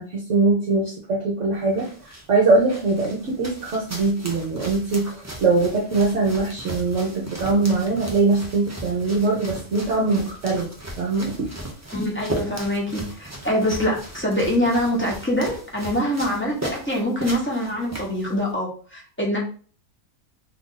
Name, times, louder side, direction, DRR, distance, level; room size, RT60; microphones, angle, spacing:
voice 1, 0.0-5.1 5.4-10.7 11.0-11.5, right 3 dB, 60° right, -3 dB, 1.0 m, -22 dB
sound 1, 1.5-18.5, right 1 dB, 25° right, 0.3 m, -37 dB
voice 2, 11.9-19.4, equal, 10° left, -3 dB, 0.8 m, -24 dB
3.0 x 2.5 x 3.8 m, 0.40 s
omnidirectional pair, 1.6 m